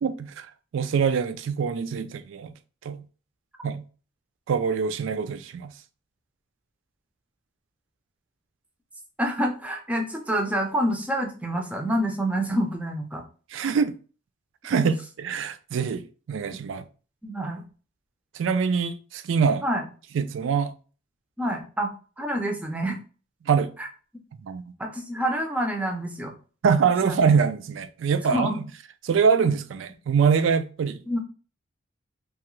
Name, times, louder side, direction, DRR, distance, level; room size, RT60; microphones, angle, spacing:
voice 1, 0.0-0.5 0.7-2.5 2.8-3.0 3.6-3.8 4.5-5.7 13.5-13.9 14.6-16.8 18.3-19.6 20.1-20.7 23.4-23.7 24.4-24.7 26.6-28.6 29.0-31.0, right 6 dB, 65° right, 0.3 m, -24 dB
voice 2, 9.2-13.2 17.2-17.6 19.6-19.8 21.4-21.9 22.2-23.0 24.8-26.3 27.0-27.2 28.3-28.6 31.1-31.2, equal, 5° right, 0.5 m, -27 dB
2.9 x 2.4 x 3.0 m
head